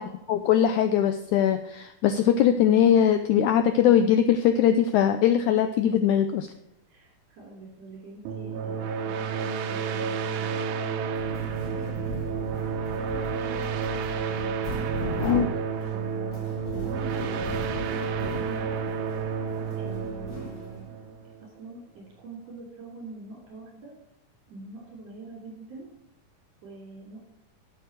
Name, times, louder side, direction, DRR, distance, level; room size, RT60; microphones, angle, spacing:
voice 1, 0.3-6.5 15.3-15.5, left 9 dB, 85° left, 8 dB, 1.7 m, -21 dB
voice 2, 6.9-12.5 13.0-13.9 15.9-18.7 19.8-20.9 21.4-23.9 24.5-25.9 26.6-27.2, right 3 dB, 50° right, -1 dB, 4.0 m, -45 dB
sound 1, 8.2-21.6, right 6 dB, 70° right, 1.9 m, -31 dB
sound 2, 11.1-21.0, left 1 dB, 45° left, 1.5 m, -37 dB
12.0 x 7.1 x 4.6 m, 0.82 s
omnidirectional pair, 4.2 m